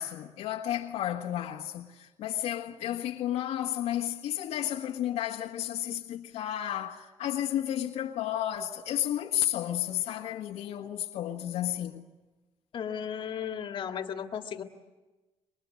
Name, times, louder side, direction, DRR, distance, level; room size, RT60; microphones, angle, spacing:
voice 1, 0.0-12.0, left 12 dB, 80° left, 1.6 m, -32 dB
voice 2, 12.7-14.6, left 8 dB, 50° left, 2.0 m, -35 dB
26.0 x 22.0 x 8.5 m
cardioid pair, 115°, 11 cm